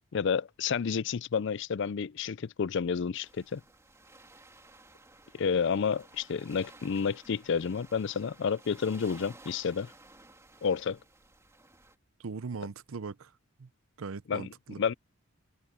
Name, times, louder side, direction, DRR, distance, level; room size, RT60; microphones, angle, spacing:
voice 1, 0.1-3.6 5.3-9.9 10.6-11.0 14.3-14.9, left 6 dB, 60° left, 0.4 m, -30 dB
sound 1, 3.2-12.0, right 2 dB, 15° right, 3.0 m, -55 dB
voice 2, 12.2-13.3 13.6-13.7 14.0-14.8, right 4 dB, 80° right, 0.6 m, -39 dB
head